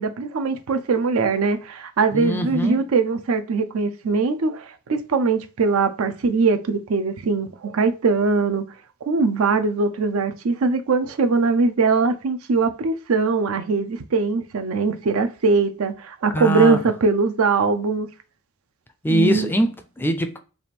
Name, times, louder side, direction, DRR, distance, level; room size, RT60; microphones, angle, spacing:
voice 1, 0.0-8.6 9.1-18.1 19.1-19.5, right 4 dB, 75° right, 0.5 m, -21 dB
voice 2, 2.1-2.8 16.3-16.8 19.0-20.4, equal, 10° left, 0.3 m, -22 dB
3.4 x 2.5 x 4.2 m
head